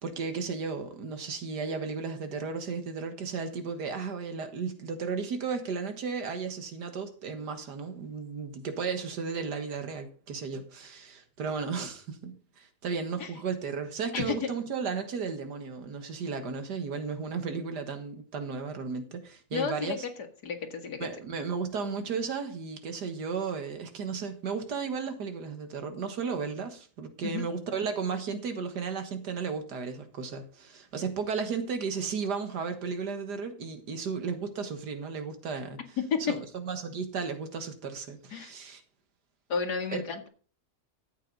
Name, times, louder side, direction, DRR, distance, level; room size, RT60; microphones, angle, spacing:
voice 1, 0.0-20.0 21.0-35.8 36.3-38.8 39.9-40.0, right 5 dB, 85° right, 2.1 m, -34 dB
voice 2, 19.5-20.0 20.4-21.1 27.2-27.4 36.1-36.2 38.3-38.5 39.5-40.3, left 6 dB, 80° left, 2.3 m, -32 dB
13.0 x 8.4 x 4.0 m
omnidirectional pair, 1.7 m